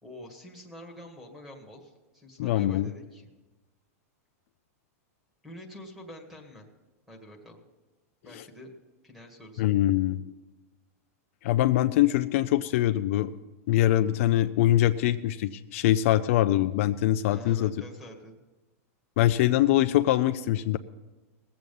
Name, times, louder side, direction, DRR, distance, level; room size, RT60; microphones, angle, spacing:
voice 1, 0.0-3.3 5.4-6.7 7.1-7.6 8.2-8.7 9.0-9.7 17.3-18.4, left 1 dB, 5° right, 2 dB, 1.9 m, -47 dB
voice 2, 2.4-2.9 8.3-8.4 9.6-10.2 11.4-13.3 13.7-17.7 19.2-20.8, left 14 dB, 60° left, 10 dB, 0.4 m, -23 dB
19.5 x 7.8 x 5.4 m, 1.1 s
supercardioid pair, 150°, 8 cm